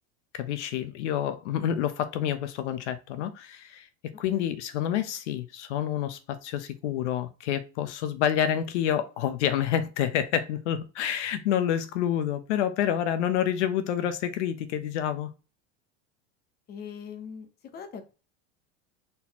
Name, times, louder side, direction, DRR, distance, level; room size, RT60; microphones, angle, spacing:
voice 1, 0.3-3.9 4.2-15.3, left 10 dB, 90° left, 0.9 m, -28 dB
voice 2, 16.7-18.1, left 7 dB, 30° left, 0.9 m, -42 dB
4.3 x 4.0 x 2.9 m
supercardioid pair, 140°, 34 cm